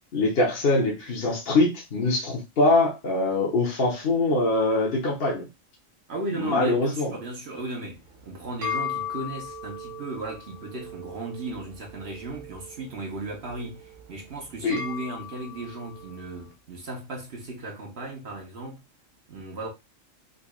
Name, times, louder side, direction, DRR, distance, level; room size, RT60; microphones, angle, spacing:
voice 1, 0.1-5.5 6.3-7.1 14.6-14.8, left 2 dB, 45° left, 1.1 m, -23 dB
voice 2, 6.1-18.8 19.3-19.7, right 2 dB, 55° right, 1.1 m, -36 dB
sound 1, 8.0-16.5, left 5 dB, 75° right, 1.5 m, -38 dB
3.9 x 3.2 x 2.3 m
omnidirectional pair, 1.4 m